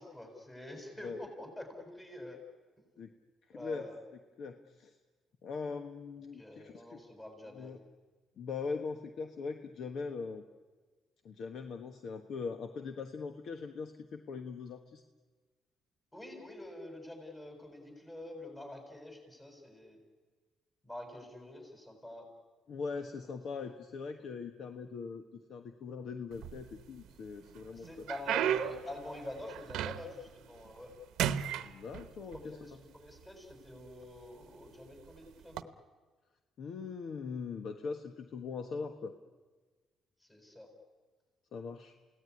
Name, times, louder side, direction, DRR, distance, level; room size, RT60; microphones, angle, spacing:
voice 1, 0.0-2.4 3.5-4.0 6.3-7.8 16.1-20.0 20.8-22.3 23.1-23.2 27.7-30.9 32.3-35.7 40.2-40.7, left 1 dB, 20° left, 3 dB, 7.4 m, -46 dB
voice 2, 3.5-3.9 4.4-4.9 5.4-7.0 7.5-7.8 8.4-10.4 11.2-15.0 22.7-28.1 31.6-32.6 36.6-39.2 41.5-41.9, left 5 dB, 65° left, 7 dB, 1.3 m, -41 dB
sound 1, 26.3-27.1 27.6-30.3 30.7-30.9 31.2-32.4 33.2-33.3 34.0-34.2 35.4-35.6, right 10 dB, 85° right, 0.9 m, -34 dB
28.5 x 18.0 x 9.8 m, 1.4 s
cardioid pair, 90°, 0 cm